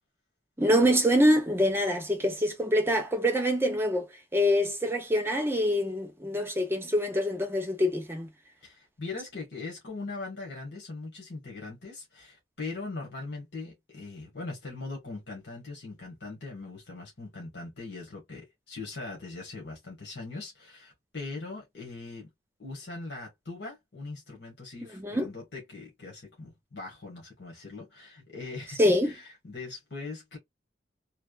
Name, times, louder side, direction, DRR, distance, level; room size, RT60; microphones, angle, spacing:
voice 1, 0.6-8.3 24.9-25.3 28.8-29.1, equal, 15° right, 0.7 m, -25 dB
voice 2, 8.6-22.3 22.6-30.4, left 3 dB, 65° left, 1.4 m, -41 dB
3.3 x 2.0 x 2.4 m
head